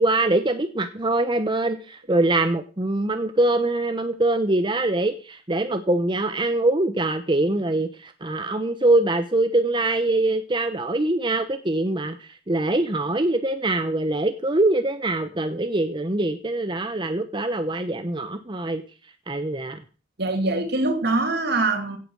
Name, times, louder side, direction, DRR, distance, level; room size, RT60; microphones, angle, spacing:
voice 1, 0.0-18.8 19.3-19.8, right 2 dB, 25° right, 0.9 m, -23 dB
voice 2, 20.2-22.0, right 2 dB, 60° right, 2.7 m, -23 dB
16.5 x 8.7 x 6.3 m
head